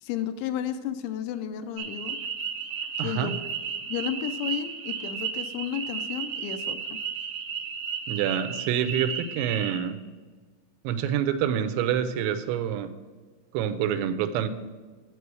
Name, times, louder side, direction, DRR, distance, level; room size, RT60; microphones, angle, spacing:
voice 1, 0.0-2.2 3.0-3.4 3.9-6.8, left 9 dB, 85° left, 9 dB, 2.9 m, -32 dB
sound 1, 1.8-9.8, right 7 dB, 70° right, 2.1 m, -34 dB
voice 2, 3.0-3.3 8.1-10.0 10.8-12.9 13.5-14.5, right 9 dB, 85° right, 9 dB, 3.0 m, -27 dB
8.2 x 8.2 x 4.7 m, 1.4 s
omnidirectional pair, 5.2 m